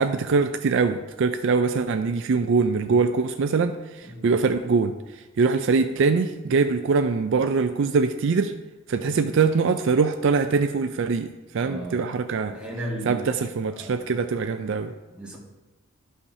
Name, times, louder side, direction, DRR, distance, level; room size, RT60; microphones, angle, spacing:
voice 1, 0.0-8.5 8.9-12.5 13.0-14.9, right 4 dB, 55° right, 8 dB, 0.4 m, -23 dB
voice 2, 11.6-12.1 12.5-13.3 13.7-14.0 15.1-15.4, right 1 dB, 5° right, -4 dB, 1.5 m, -35 dB
13.0 x 5.7 x 2.7 m, 1.1 s
head